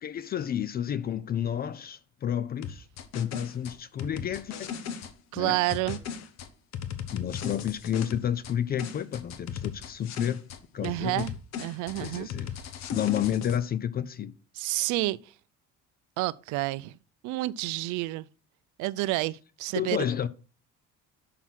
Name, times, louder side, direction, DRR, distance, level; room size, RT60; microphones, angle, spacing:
voice 1, 0.0-2.9 3.1-4.7 5.3-5.6 7.1-10.4 10.7-11.2 12.0-12.5 12.9-14.3 19.7-20.3, left 9 dB, 30° left, 0.4 m, -30 dB
sound 1, 2.6-5.1 5.7-8.5 8.8-10.6 10.8-13.6, left 7 dB, 60° left, 1.0 m, -37 dB
voice 2, 5.3-6.0 10.8-11.3 11.6-12.3 14.6-15.3 16.2-17.0 17.2-18.3 18.8-20.1, right 19 dB, 80° right, 0.5 m, -29 dB
6.2 x 5.6 x 5.8 m
cardioid pair, 140°, 30 cm